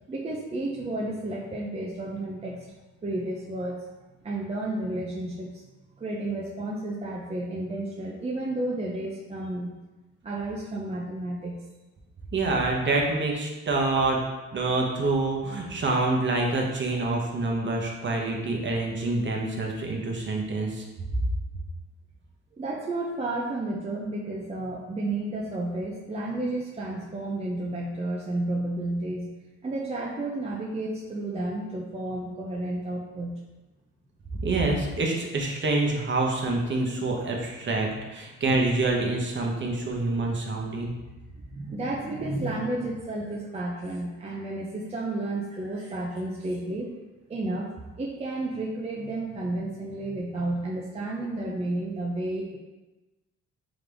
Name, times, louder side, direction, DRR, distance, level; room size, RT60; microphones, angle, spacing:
voice 1, 0.1-2.7 3.0-3.9 4.2-5.6 6.0-9.8 10.2-11.6 22.5-29.4 29.6-33.4 41.5-46.9 47.3-52.6, right 2 dB, 20° right, -3 dB, 0.5 m, -32 dB
voice 2, 12.3-14.2 14.5-20.8 34.4-40.9, right 2 dB, 40° right, 0 dB, 0.9 m, -26 dB
3.8 x 3.4 x 3.4 m, 1.1 s
cardioid pair, 90°, 30 cm